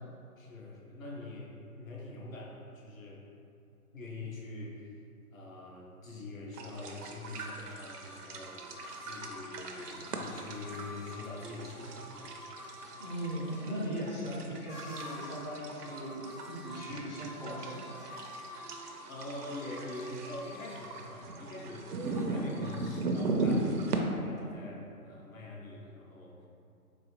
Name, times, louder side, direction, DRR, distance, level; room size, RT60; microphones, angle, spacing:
voice 1, 0.4-3.2 3.9-5.0 5.3-12.4 16.9-17.1 19.1-26.5, left 2 dB, 60° left, -3 dB, 0.8 m, -44 dB
sound 1, 6.5-24.0, right 2 dB, 85° right, 0.6 m, -38 dB
sound 2, 7.4-13.6 14.7-15.5 15.8-21.1 22.0-22.8, left 1 dB, 85° left, 1.3 m, -48 dB
voice 2, 13.0-18.3, equal, 30° left, -9 dB, 0.5 m, -39 dB
4.0 x 2.4 x 2.9 m, 2.6 s
figure-of-eight pair, 145°, 46 cm